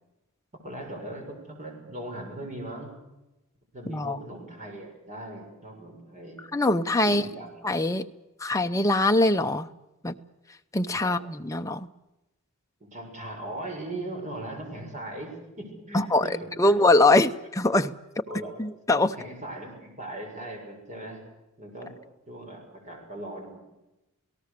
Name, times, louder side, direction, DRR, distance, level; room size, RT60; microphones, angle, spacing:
voice 1, 0.6-2.9 3.7-6.4 7.0-7.5 11.0-11.2 12.8-16.7 18.3-18.5 19.1-21.2 21.6-21.9 22.3-23.6, right 1 dB, 35° right, 2 dB, 6.7 m, -39 dB
voice 2, 3.9-4.2 6.5-7.3 7.6-8.0 8.4-9.7 10.0-10.2 10.7-11.9 15.9-17.9 18.6-19.2, left 2 dB, 15° left, 6 dB, 0.8 m, -23 dB
28.0 x 18.0 x 6.8 m, 0.98 s
head